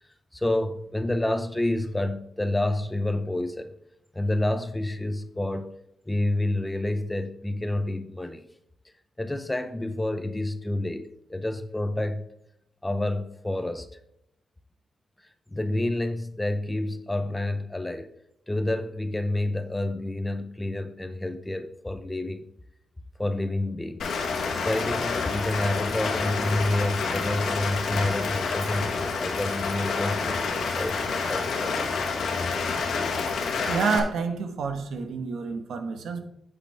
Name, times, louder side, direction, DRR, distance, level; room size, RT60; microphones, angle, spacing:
voice 1, 0.3-3.7 4.1-5.8 6.1-8.5 9.2-12.3 12.8-13.9 15.5-18.1 18.5-22.5 23.2-24.2 24.6-31.9, left 1 dB, 10° left, 0.5 m, -29 dB
Rain, 24.0-34.0, left 4 dB, 65° left, 1.7 m, -28 dB
voice 2, 33.7-36.2, right 5 dB, 75° right, 1.3 m, -28 dB
8.5 x 8.2 x 3.4 m
wide cardioid pair, 165°, 0 cm